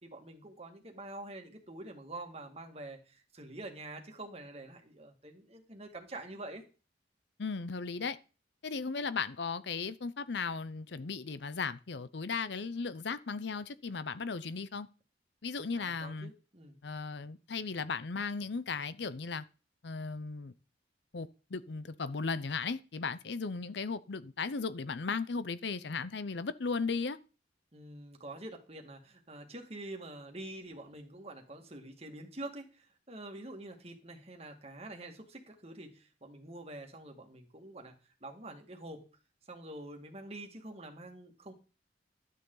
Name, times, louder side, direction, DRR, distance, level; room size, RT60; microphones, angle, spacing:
voice 1, 0.0-6.6 15.8-16.8 27.7-37.9 38.2-39.1 39.5-41.5, right 2 dB, 35° right, 2.1 m, -46 dB
voice 2, 7.4-8.2 8.6-14.9 15.4-16.3 16.8-19.4 19.8-20.5 21.1-27.2, left 4 dB, 65° left, 0.6 m, -36 dB
12.5 x 9.1 x 3.9 m
head